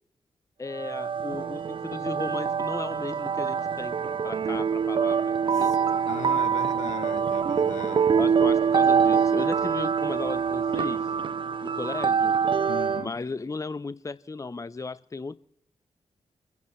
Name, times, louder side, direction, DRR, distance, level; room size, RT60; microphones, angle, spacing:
voice 1, 0.6-5.7 8.2-11.0 11.6-12.3 12.9-15.4, left 3 dB, 25° left, 0.7 m, -35 dB
sound 1, 0.7-13.1, right 6 dB, 45° right, 0.4 m, -25 dB
voice 2, 6.1-8.2 12.7-13.2, left 8 dB, 75° left, 1.0 m, -39 dB
29.0 x 10.5 x 3.2 m
supercardioid pair, 40°, 12 cm